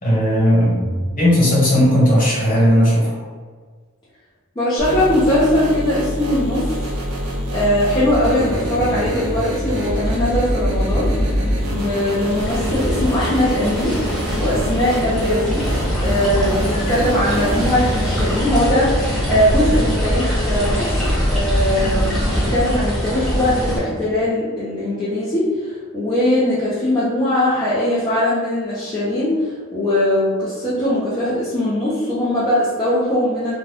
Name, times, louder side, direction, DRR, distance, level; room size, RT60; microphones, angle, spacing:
voice 1, 0.0-3.2, equal, 40° left, -8 dB, 1.4 m, -16 dB
voice 2, 4.6-6.9 7.5-11.1 11.7-13.9 14.4-15.6 16.0-33.6, left 1 dB, 20° left, -10 dB, 0.6 m, -20 dB
sound 1, 4.8-18.4, equal, 75° right, 0.5 m, -25 dB
sound 2, 8.0-24.2, equal, 30° right, 1.0 m, -31 dB
sound 3, 12.4-23.8, equal, ahead, 0.9 m, -22 dB
2.5 x 2.3 x 3.3 m, 1.5 s
head